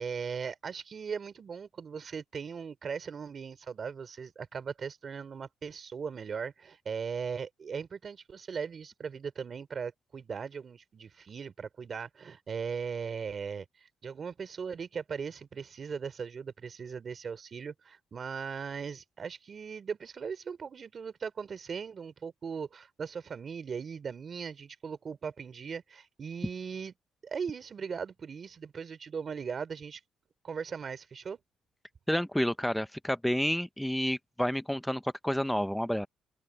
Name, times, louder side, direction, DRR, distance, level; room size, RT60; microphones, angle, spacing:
voice 1, 0.0-26.9 27.2-30.0 30.4-31.4, right 6 dB, 45° right, 3.3 m, -38 dB
voice 2, 32.1-36.1, equal, 5° left, 0.8 m, -30 dB
open air
cardioid pair, 90°, 0 cm